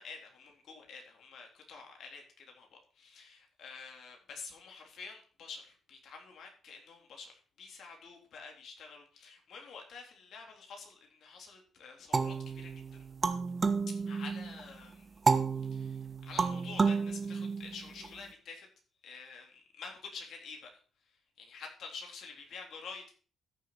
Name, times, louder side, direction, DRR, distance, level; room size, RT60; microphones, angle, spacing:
voice 1, 0.0-13.1 13.9-15.2 15.6-18.7 19.0-23.1, left 5 dB, 65° left, 1 dB, 3.6 m, -49 dB
sound 1, 12.1-14.6 15.3-18.1, right 4 dB, 30° right, 1.1 m, -31 dB
13.5 x 6.6 x 5.0 m, 0.41 s
cardioid pair, 90°, 0 cm